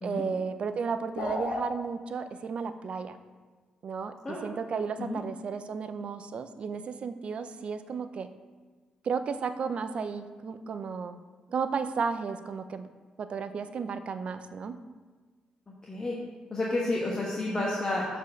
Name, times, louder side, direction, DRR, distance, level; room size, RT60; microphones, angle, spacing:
voice 1, 0.0-3.2 3.8-8.3 9.0-11.2 11.5-12.9 13.2-14.8, right 5 dB, 50° right, 10 dB, 0.5 m, -33 dB
sound 1, 1.2-1.7, left 3 dB, 65° left, 1.2 m, -32 dB
voice 2, 16.5-18.2, left 2 dB, 30° left, -4 dB, 1.2 m, -30 dB
7.1 x 4.5 x 6.3 m, 1.4 s
cardioid pair, 110°, 2 cm